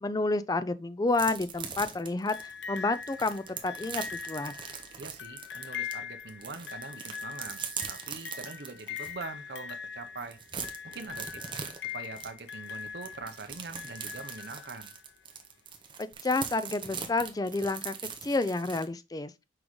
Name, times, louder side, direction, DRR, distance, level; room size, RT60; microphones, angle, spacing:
voice 1, 0.0-4.5 16.0-17.9 18.2-19.3, left 3 dB, 20° left, 0.3 m, -30 dB
sound 1, 1.1-5.9 6.3-9.1 9.6-9.7 10.0-18.8, right 6 dB, 25° right, 0.9 m, -41 dB
sound 2, 2.3-15.1 16.1-16.2, left 7 dB, 75° left, 0.6 m, -42 dB
voice 2, 5.0-7.6 7.9-10.4 10.8-11.4 11.9-14.9, right 3 dB, 60° right, 0.7 m, -43 dB
6.2 x 4.9 x 3.1 m
head